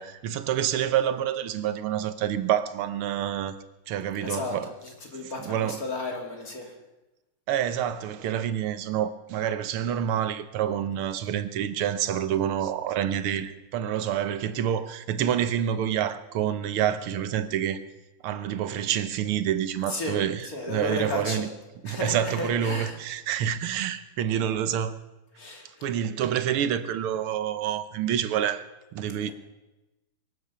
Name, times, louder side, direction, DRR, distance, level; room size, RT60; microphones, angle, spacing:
voice 1, 0.0-3.5 3.9-4.7 5.4-5.8 7.5-17.8 18.2-21.5 21.8-25.0 25.8-28.7 28.9-29.3, right 10 dB, 85° right, 1.8 m, -27 dB
voice 2, 4.2-6.7 19.9-20.2 20.4-21.5 21.8-23.0 25.4-25.9, left 2 dB, 45° left, 2.8 m, -33 dB
23.5 x 9.0 x 6.8 m
omnidirectional pair, 2.3 m